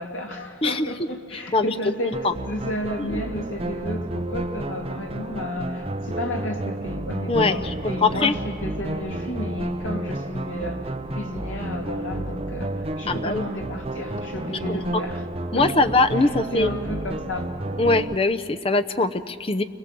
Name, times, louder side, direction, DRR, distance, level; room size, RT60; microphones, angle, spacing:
voice 1, 0.0-2.1 2.4-15.3 15.5-15.9 16.1-17.5, left 1 dB, 75° left, 1 dB, 3.0 m, -32 dB
sound 1, 2.1-18.2, right 1 dB, 30° right, 0.7 m, -31 dB
voice 2, 8.0-8.3 13.1-13.4 14.7-14.8 15.5-16.7 17.8-19.6, left 3 dB, 30° left, 8 dB, 0.7 m, -21 dB
29.0 x 22.5 x 7.7 m, 2.4 s
head